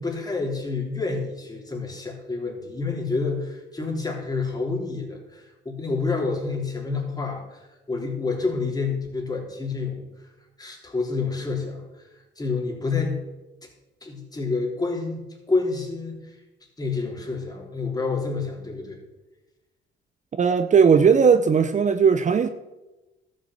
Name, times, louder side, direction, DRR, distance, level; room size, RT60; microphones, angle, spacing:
voice 1, 0.0-10.3 10.6-12.1 12.4-13.2 14.0-16.4 16.8-19.0, left 4 dB, 20° left, 0 dB, 3.4 m, -28 dB
voice 2, 20.4-22.5, right 6 dB, 40° right, 11 dB, 0.6 m, -17 dB
12.5 x 6.3 x 7.7 m, 1.1 s
cardioid pair, 90°, 20 cm